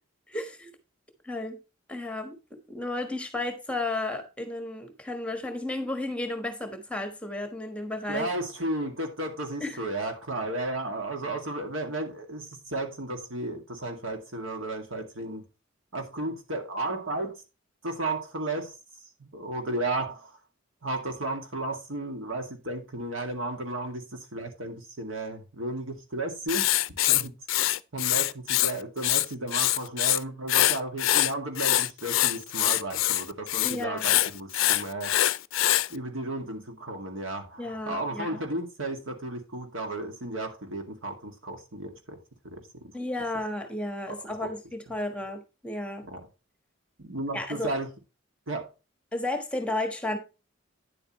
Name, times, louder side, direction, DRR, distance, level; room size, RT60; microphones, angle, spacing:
voice 1, 0.3-0.7 1.2-1.6 1.9-8.3 9.6-9.8 33.6-34.0 37.6-38.4 42.9-46.1 47.3-47.7 49.1-50.2, left 2 dB, 5° left, 1.3 m, -33 dB
voice 2, 8.1-15.4 15.9-17.4 17.8-18.7 19.2-20.4 20.8-26.7 27.1-27.3 27.9-35.1 35.9-42.2 42.4-42.9 44.1-44.5 46.1-46.2 47.0-47.9 48.5-48.7, right 2 dB, 80° right, 2.2 m, -34 dB
Writing, 26.5-28.7 29.0-30.2 30.5-35.9, left 15 dB, 75° left, 0.4 m, -24 dB
9.9 x 7.7 x 3.1 m
head